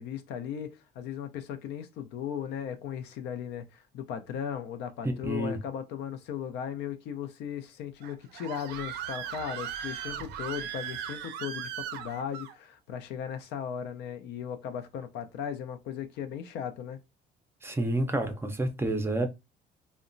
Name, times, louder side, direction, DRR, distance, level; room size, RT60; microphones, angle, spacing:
voice 1, 0.0-17.0, left 8 dB, 85° left, 0.5 m, -37 dB
voice 2, 5.0-5.6 17.6-19.3, right 1 dB, 15° right, 0.4 m, -29 dB
Screaming, 8.0-12.5, right 9 dB, 85° right, 0.4 m, -38 dB
2.8 x 2.1 x 2.5 m
cardioid pair, 110°, 17 cm